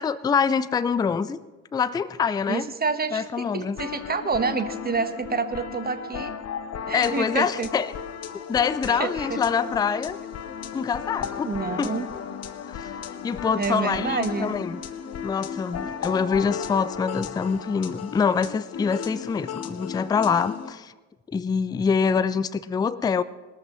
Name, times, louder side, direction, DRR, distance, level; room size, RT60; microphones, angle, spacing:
voice 1, 0.0-1.4 1.7-2.7 3.1-3.8 6.9-7.9 8.5-10.2 10.7-11.5 11.8-11.9 12.7-12.9 13.2-14.8 15.2-20.9 21.3-23.2, left 6 dB, 10° left, 17 dB, 0.4 m, -25 dB
voice 2, 2.5-3.2 3.5-6.3 6.9-7.7 8.9-9.4 11.4-12.1 13.6-14.5, right 5 dB, 20° right, 10 dB, 1.2 m, -28 dB
sound 1, 3.8-20.7, left 7 dB, 35° left, 1.0 m, -35 dB
21.0 x 13.5 x 3.1 m, 1.2 s
figure-of-eight pair, 55°, 41 cm